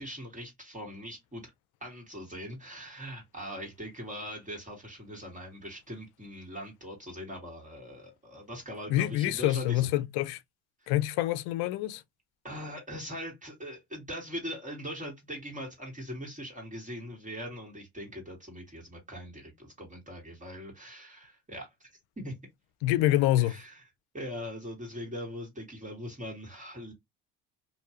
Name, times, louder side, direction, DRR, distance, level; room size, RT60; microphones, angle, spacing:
voice 1, 0.0-1.5 1.8-9.9 10.8-10.9 12.4-21.9 22.2-22.3 23.4-23.8 24.1-26.9, equal, 20° right, 1.5 m, -41 dB
voice 2, 8.9-10.4 10.9-12.0 22.8-23.5, left 15 dB, 85° left, 0.5 m, -26 dB
2.6 x 2.3 x 2.8 m
supercardioid pair, 85°, 37 cm